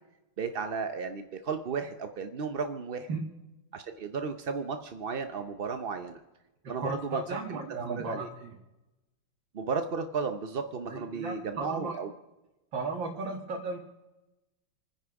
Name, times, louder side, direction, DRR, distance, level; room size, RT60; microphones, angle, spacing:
voice 1, 0.4-3.1 3.7-6.2 6.7-7.6 7.9-8.3 9.5-12.1, right 5 dB, 50° right, 7 dB, 0.6 m, -34 dB
voice 2, 6.8-8.6 10.9-12.0 12.7-13.8, right 3 dB, 90° right, 0 dB, 2.3 m, -35 dB
27.0 x 10.5 x 4.8 m, 1.0 s
omnidirectional pair, 2.0 m